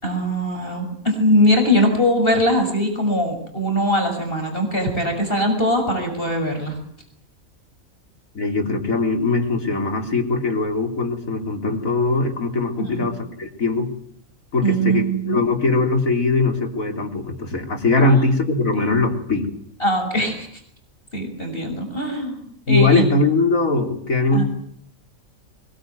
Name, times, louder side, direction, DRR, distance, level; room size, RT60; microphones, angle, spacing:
voice 1, 0.0-6.8 12.8-13.1 14.6-15.4 18.0-18.2 19.8-20.5 21.1-23.1 24.3-24.4, equal, 40° left, 4 dB, 6.5 m, -21 dB
voice 2, 8.3-13.9 14.5-19.5 22.7-24.4, left 3 dB, 75° left, 4 dB, 4.0 m, -21 dB
23.0 x 22.5 x 9.4 m, 0.66 s
omnidirectional pair, 1.4 m